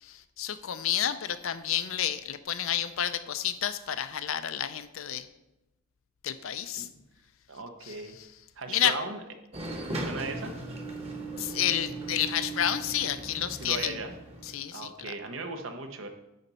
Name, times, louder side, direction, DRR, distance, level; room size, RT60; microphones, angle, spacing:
voice 1, 0.0-5.3 6.2-6.9 7.8-8.3 8.7-8.9 11.4-14.0 14.4-15.1, left 10 dB, 70° left, 12 dB, 0.5 m, -30 dB
voice 2, 7.5-8.2 8.6-9.2 9.9-10.5 13.6-14.1 14.7-16.1, right 3 dB, 65° right, 6 dB, 1.0 m, -37 dB
sound 1, 9.5-14.5, right 2 dB, 30° right, 1.2 m, -38 dB
9.3 x 4.1 x 5.5 m, 0.94 s
head